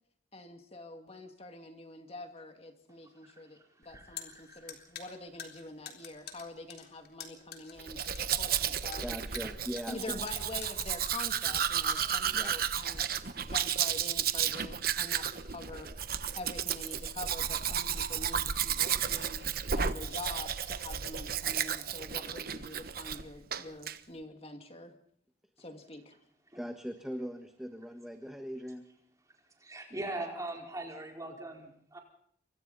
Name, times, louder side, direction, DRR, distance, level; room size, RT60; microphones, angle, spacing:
voice 1, 0.3-9.1 9.9-13.0 13.4-15.9 16.3-19.4 19.7-24.9 25.6-26.2, left 2 dB, 35° left, 5 dB, 2.3 m, -45 dB
voice 2, 3.2-4.8 26.5-26.6 29.6-32.0, right 2 dB, 20° right, 1 dB, 4.5 m, -42 dB
sound 1, 3.8-13.0, left 7 dB, 55° left, 3.6 m, -48 dB
Domestic sounds home sounds, 7.8-23.2 23.5-24.0, right 8 dB, 55° right, 1.1 m, -33 dB
voice 3, 9.0-10.2 12.3-12.5 26.5-28.9, equal, 5° right, 5 dB, 1.5 m, -40 dB
28.0 x 24.5 x 4.1 m, 0.65 s
head